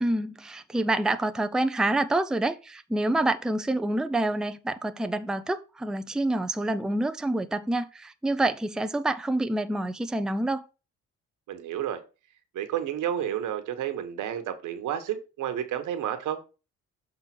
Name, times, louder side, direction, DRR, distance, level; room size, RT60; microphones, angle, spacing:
voice 1, 0.0-10.6, right 2 dB, ahead, 0.5 m, -27 dB
voice 2, 11.5-12.0 12.5-16.4, right 10 dB, 80° right, 1.3 m, -31 dB
7.2 x 3.7 x 6.0 m
cardioid pair, 90°, 30 cm